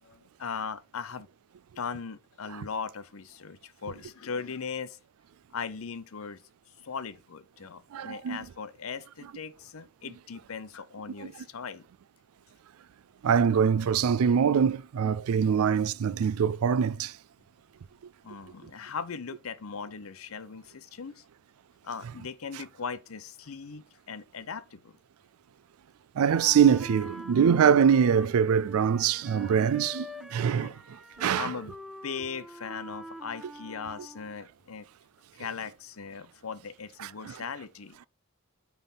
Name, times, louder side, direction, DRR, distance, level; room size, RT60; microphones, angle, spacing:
voice 1, 0.0-1.3 1.8-5.0 5.5-6.4 6.8-11.8 18.2-21.2 21.8-25.0 30.6-30.7 31.4-31.7 32.0-34.9 35.4-38.1, left 5 dB, 75° left, 0.7 m, -39 dB
voice 2, 7.9-8.4 11.2-11.3 13.2-17.1 26.2-30.8 31.2-31.5 37.0-37.4, right 7 dB, 85° right, 0.4 m, -24 dB
Wind instrument woodwind instrument, 26.3-34.5, equal, ahead, 0.4 m, -45 dB
9.2 x 3.5 x 4.1 m
head